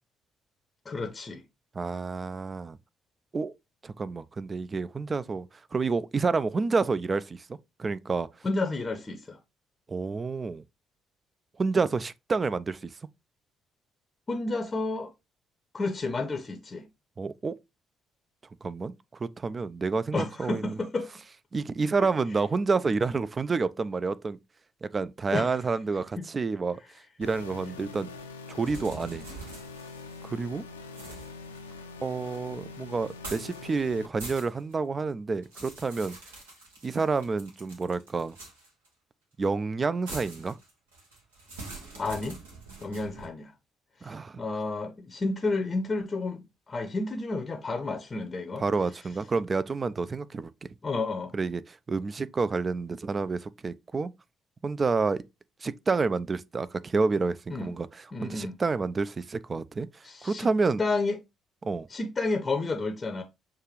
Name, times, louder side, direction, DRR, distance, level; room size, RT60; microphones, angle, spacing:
voice 1, 0.9-1.4 8.4-9.4 14.3-15.1 15.7-16.9 20.1-21.1 25.3-25.6 26.2-26.3 42.0-42.4 42.8-43.5 44.0-48.6 50.8-51.3 57.5-57.7 58.1-58.6 60.0-60.5 60.8-61.2 61.9-63.2, left 3 dB, 30° left, 0.6 m, -31 dB
voice 2, 1.7-2.8 3.3-3.5 3.8-5.5 5.7-8.3 9.9-10.6 11.6-12.9 17.2-17.6 18.6-18.9 19.2-20.8 21.5-24.4 24.8-26.8 27.2-28.1 28.5-29.2 30.2-30.6 32.0-36.2 36.8-38.4 39.4-40.6 44.0-44.4 48.6-50.5 51.3-54.1 54.6-55.2 55.6-57.9 58.2-60.8 61.6-61.9, right 4 dB, 35° right, 0.3 m, -29 dB
sound 1, 27.2-34.1, left 4 dB, 85° left, 0.4 m, -44 dB
sound 2, 28.6-30.4 30.9-32.4 33.1-33.6 33.9-34.7 35.1-38.9 40.1-43.3, right 3 dB, 80° right, 1.0 m, -45 dB
6.4 x 2.4 x 2.9 m
figure-of-eight pair, 45°, 0 cm